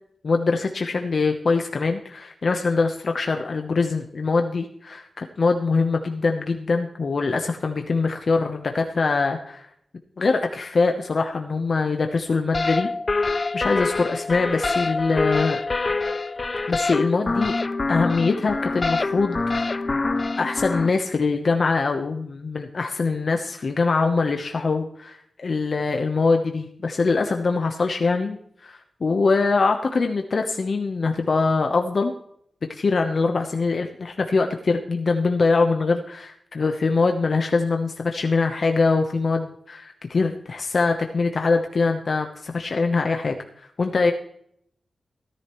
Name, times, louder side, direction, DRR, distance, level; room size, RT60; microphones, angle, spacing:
voice 1, 0.2-9.6 10.2-12.9 13.5-15.6 16.7-17.5 17.9-19.8 20.4-28.4 28.6-32.1 32.7-43.4 43.8-44.1, left 4 dB, 55° left, 4 dB, 1.0 m, -23 dB
sound 1, 12.5-20.9, left 3 dB, 35° left, 0.5 m, -25 dB
16.5 x 11.0 x 3.1 m, 0.69 s
wide cardioid pair, 115°, 0 cm